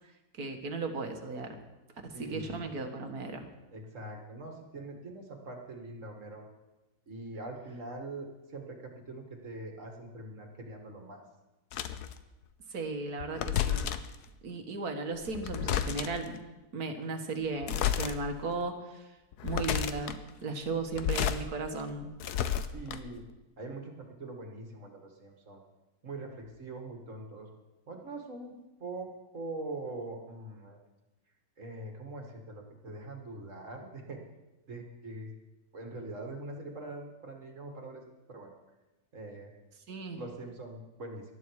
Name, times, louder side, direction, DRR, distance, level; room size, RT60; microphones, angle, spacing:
voice 1, 0.4-1.6 2.0-3.5 12.7-13.9 14.4-16.4 16.7-19.0 19.4-22.1 39.9-40.2, right 3 dB, 70° right, 5 dB, 2.0 m, -36 dB
voice 2, 2.1-2.7 3.7-6.4 7.1-11.2 22.7-23.3 23.6-25.6 26.0-27.5 27.9-28.5 28.8-30.8 31.6-34.2 34.7-35.3 35.7-38.0 38.3-38.5 39.1-39.5 40.1-41.2, right 2 dB, 50° right, 2 dB, 2.4 m, -43 dB
sound 1, 11.7-12.1 13.2-14.2 15.2-16.3 17.6-18.1 18.6-18.7 19.3-20.2 20.8-21.4 21.8-23.2, left 10 dB, 80° left, 1.3 m, -31 dB
19.0 x 12.5 x 4.8 m, 1.0 s
omnidirectional pair, 1.7 m